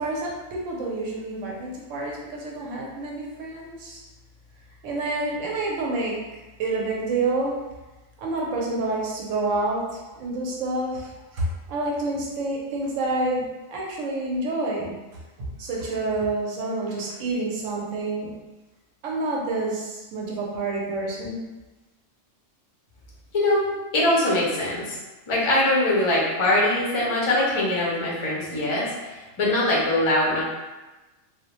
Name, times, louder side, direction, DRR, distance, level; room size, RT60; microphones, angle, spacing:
voice 1, 0.0-4.0 4.8-6.2 6.6-7.5 8.2-14.9 15.4-18.3 19.0-21.4, right 2 dB, 75° right, -3 dB, 0.9 m, -28 dB
voice 2, 23.3-23.6 23.9-25.0 25.3-30.4, left 1 dB, 45° left, -5 dB, 0.4 m, -22 dB
2.3 x 2.0 x 2.9 m, 1.1 s
omnidirectional pair, 1.3 m